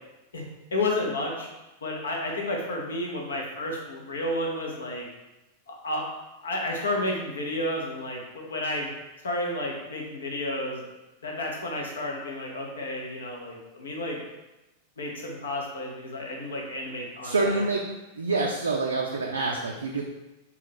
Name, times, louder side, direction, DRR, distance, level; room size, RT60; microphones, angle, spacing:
voice 1, 0.7-1.5 1.8-5.1 5.7-6.1 6.4-8.9 9.2-10.9 11.2-14.2 15.0-17.6, left 1 dB, 65° left, 0 dB, 0.7 m, -31 dB
voice 2, 17.2-17.8 18.1-20.0, right 3 dB, 75° right, 0 dB, 0.3 m, -26 dB
3.6 x 2.3 x 3.5 m, 1.0 s
figure-of-eight pair, 90°, 0 cm